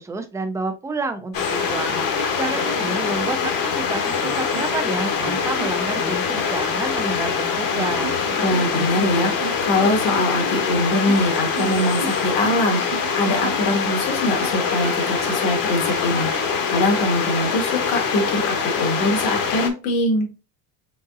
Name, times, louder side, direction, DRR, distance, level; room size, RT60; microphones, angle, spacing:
voice 1, 0.0-8.1, right 3 dB, 5° right, 7 dB, 0.4 m, -29 dB
sound 1, 1.3-19.7, left 6 dB, 45° left, 1.0 m, -24 dB
sound 2, 1.9-3.6 4.2-4.8 5.2-6.5 7.7-8.9 9.2-13.8 14.4-16.5, right 4 dB, 35° right, 1.0 m, -35 dB
voice 2, 8.4-20.3, left 1 dB, 70° left, 2 dB, 1.8 m, -23 dB
4.1 x 3.6 x 2.5 m, 0.32 s
supercardioid pair, 120°, 49 cm